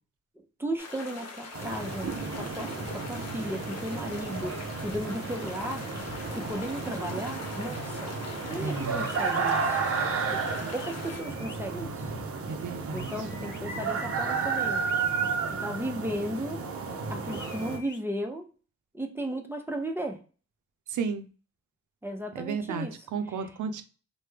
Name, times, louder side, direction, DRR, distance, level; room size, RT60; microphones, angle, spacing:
voice 1, 0.4-5.9 6.3-8.1 8.5-9.8 10.3-10.4 10.7-12.1 12.9-14.8 15.5-16.6 17.1-18.5 18.9-20.2 22.0-22.9, right 1 dB, 10° right, 3 dB, 0.6 m, -35 dB
sound 1, 0.8-11.2, left 4 dB, 60° left, 0.8 m, -42 dB
sound 2, 1.5-17.8, right 5 dB, 50° right, 0.6 m, -32 dB
voice 2, 8.6-9.0 12.5-13.1 20.9-21.2 22.3-23.8, right 5 dB, 90° right, 8 dB, 0.5 m, -33 dB
sound 3, 9.0-9.4 10.7-11.6 12.9-13.6 14.9-15.4 17.2-18.0, left 4 dB, 40° left, 0.5 m, -48 dB
3.2 x 2.2 x 3.2 m, 0.36 s
cardioid pair, 75°, 29 cm